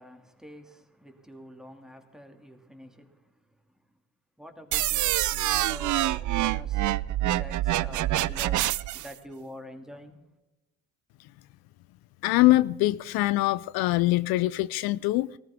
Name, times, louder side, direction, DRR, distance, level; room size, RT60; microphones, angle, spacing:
voice 1, 0.0-3.4 4.4-6.8 7.2-10.2, equal, ahead, 2.6 m, -46 dB
sound 1, 4.7-9.1, right 15 dB, 55° right, 0.5 m, -26 dB
voice 2, 12.2-15.3, left 18 dB, 80° left, 0.5 m, -23 dB
18.5 x 14.0 x 3.6 m
supercardioid pair, 60°, 36 cm